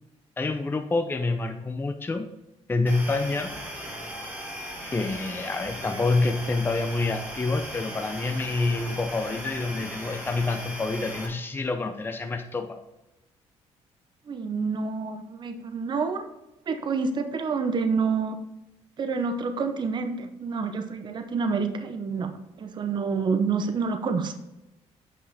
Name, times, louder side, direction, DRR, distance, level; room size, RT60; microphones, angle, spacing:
voice 1, 0.4-2.3 2.7-3.5 4.9-12.8, left 3 dB, 20° left, 6 dB, 0.6 m, -27 dB
sound 1, 2.9-11.3, equal, 15° right, 2.4 m, -37 dB
voice 2, 14.3-16.3 16.7-18.4 19.0-22.3 22.6-24.3, right 5 dB, 40° right, 7 dB, 0.8 m, -28 dB
8.5 x 5.4 x 4.1 m, 0.95 s
cardioid pair, 110°, 12 cm